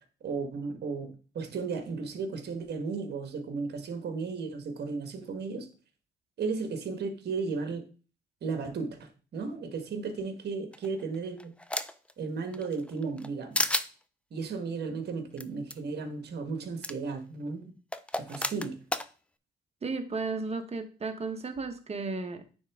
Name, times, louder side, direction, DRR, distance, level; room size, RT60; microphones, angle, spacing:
voice 1, 0.2-5.7 6.4-7.8 8.4-11.5 12.2-13.7 14.3-17.7 18.2-18.7, right 4 dB, 55° right, 1.4 m, -35 dB
sound 1, 10.7-12.1 12.5-13.3 13.5-13.9 15.4-15.5 15.7-15.8 16.8-16.9 17.9-19.1, left 1 dB, 5° left, 0.4 m, -31 dB
voice 2, 19.8-22.5, right 3 dB, 30° right, 1.1 m, -34 dB
9.4 x 3.5 x 3.6 m
cardioid pair, 90°, 20 cm